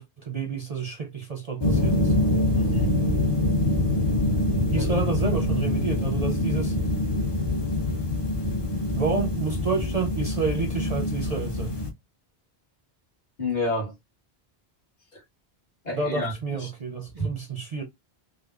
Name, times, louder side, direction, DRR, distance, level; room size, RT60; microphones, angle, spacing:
voice 1, 0.0-2.1 4.7-6.7 8.9-11.8 15.9-17.8, right 4 dB, 45° right, 0.5 m, -29 dB
sound 1, 1.6-11.9, left 1 dB, 30° left, 0.6 m, -25 dB
voice 2, 2.5-3.0 4.8-4.9 13.4-13.9 15.1-15.2 15.8-16.7 17.2-17.4, equal, 45° left, 1.5 m, -29 dB
4.9 x 2.1 x 2.3 m
omnidirectional pair, 1.0 m